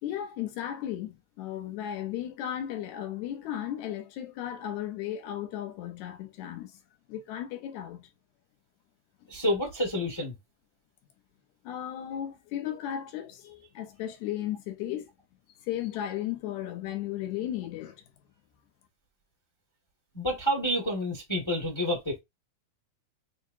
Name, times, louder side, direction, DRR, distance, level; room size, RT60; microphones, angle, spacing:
voice 1, 0.0-6.8 7.1-8.1 11.6-15.1 15.6-18.0, left 11 dB, 70° left, 2.1 m, -35 dB
voice 2, 9.3-10.3 20.1-22.2, equal, 15° left, 0.8 m, -29 dB
6.4 x 2.4 x 2.7 m
omnidirectional pair, 4.0 m